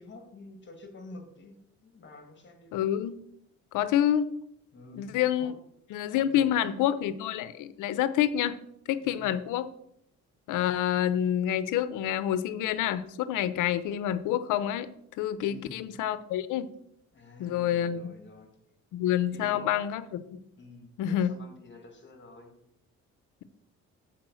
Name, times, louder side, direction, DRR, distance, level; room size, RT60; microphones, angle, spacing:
voice 1, 0.0-1.6 1.8-2.8 4.7-5.5 6.1-6.9 9.0-9.3 15.4-15.9 17.1-18.5 19.3-19.8 20.6-22.5, left 2 dB, 40° left, 5 dB, 2.0 m, -49 dB
voice 2, 2.7-3.2 3.7-4.2 4.9-5.5 5.9-8.6 8.9-9.7 10.5-14.9 15.2-16.7 17.4-18.1 18.9-20.4 21.0-21.3, left 11 dB, 90° left, 15 dB, 0.6 m, -28 dB
7.6 x 4.7 x 6.2 m, 0.75 s
cardioid pair, 90°, 30 cm